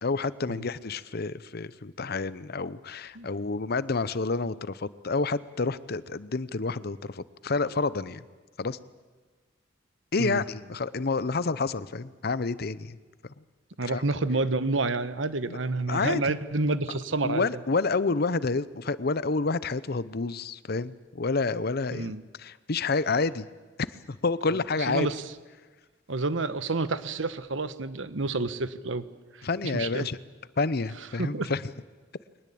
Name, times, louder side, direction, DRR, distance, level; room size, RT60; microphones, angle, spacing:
voice 1, 0.0-8.2 8.6-8.8 10.1-13.0 13.9-14.0 15.4-15.6 15.9-16.3 17.2-22.1 22.4-23.5 24.2-25.1 29.4-30.2 30.6-31.6, left 3 dB, 55° left, 17 dB, 0.8 m, -29 dB
voice 2, 13.8-17.5 21.9-22.2 24.9-25.2 26.1-29.0 29.7-30.1 31.2-31.5, right 3 dB, 80° right, 13 dB, 1.2 m, -29 dB
23.0 x 19.0 x 8.6 m, 1.4 s
head